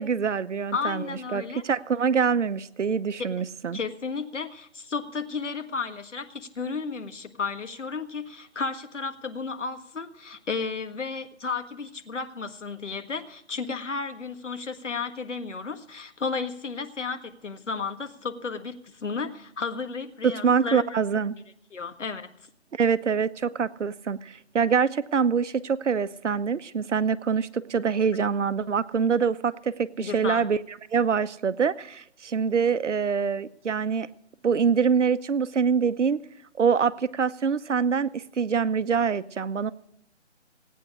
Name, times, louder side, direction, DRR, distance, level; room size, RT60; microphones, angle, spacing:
voice 1, 0.0-1.0 1.3-3.8 20.2-21.3 22.7-30.6 30.9-34.1 34.4-36.2 36.6-39.7, right 6 dB, 80° right, 14 dB, 0.9 m, -25 dB
voice 2, 0.7-1.6 3.2-3.3 3.7-21.0 21.7-22.3 28.1-28.2 30.0-30.5, left 4 dB, 85° left, 7 dB, 1.6 m, -33 dB
17.0 x 9.1 x 6.2 m, 0.71 s
hypercardioid pair, 155°, 35 cm